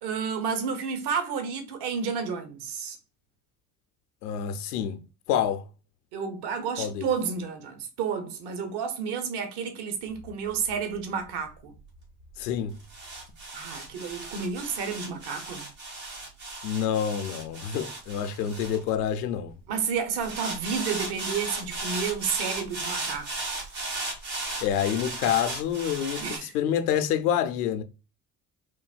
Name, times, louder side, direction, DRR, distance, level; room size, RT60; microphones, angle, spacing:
voice 1, 0.0-3.0 6.1-11.7 13.5-15.6 19.7-23.3 26.2-26.5, right 6 dB, 65° right, 1.0 m, -31 dB
voice 2, 4.2-5.0 5.3-5.6 6.8-7.1 12.4-12.8 16.6-19.5 24.6-27.8, left 9 dB, 85° left, 0.6 m, -27 dB
sound 1, 10.1-19.5 20.2-26.4, right 2 dB, 90° right, 1.7 m, -36 dB
3.9 x 2.7 x 2.4 m
hypercardioid pair, 55°, 44 cm